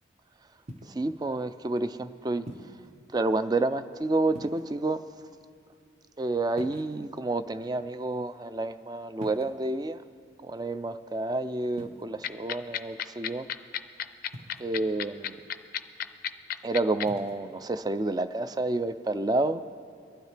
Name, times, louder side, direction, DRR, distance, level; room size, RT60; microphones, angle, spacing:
sound 1, 0.7-1.1 2.5-2.9 4.3-4.9 6.5-7.3 9.2-9.7 11.7-12.0 14.3-14.8 17.0-17.4, right 1 dB, 35° right, 1.0 m, -45 dB
voice 1, 0.9-2.5 3.1-5.0 6.2-10.0 10.4-13.5 14.6-15.4 16.6-19.6, right 2 dB, 20° right, 11 dB, 0.4 m, -29 dB
sound 2, 12.2-17.0, left 10 dB, 50° left, 0.4 m, -31 dB
22.5 x 12.5 x 3.3 m, 2.4 s
head